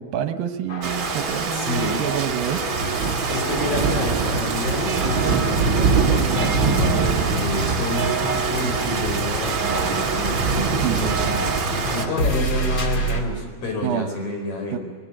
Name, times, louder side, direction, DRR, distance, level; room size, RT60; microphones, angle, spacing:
voice 1, 0.0-2.6 10.8-11.1 13.8-14.1 14.7-14.8, right 10 dB, 75° right, 8 dB, 2.5 m, -27 dB
sound 1, 0.7-13.2, equal, 30° left, 2.1 m, -31 dB
Rain, 0.8-12.1, right 5 dB, 50° right, 1.5 m, -23 dB
voice 2, 1.5-2.0 3.3-14.8, left 1 dB, 50° left, 3 dB, 5.6 m, -29 dB
23.0 x 19.5 x 8.9 m, 1.5 s
omnidirectional pair, 4.3 m